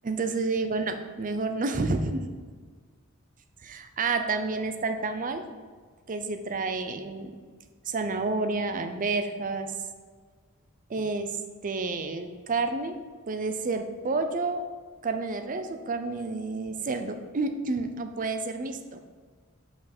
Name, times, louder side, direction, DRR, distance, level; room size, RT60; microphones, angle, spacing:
voice 1, 0.0-2.3 3.6-5.5 6.1-7.3 7.9-9.7 10.9-11.3 11.6-13.0 13.3-14.6 15.0-19.0, right 3 dB, 40° right, 7 dB, 0.5 m, -30 dB
5.8 x 5.3 x 4.3 m, 1.6 s
head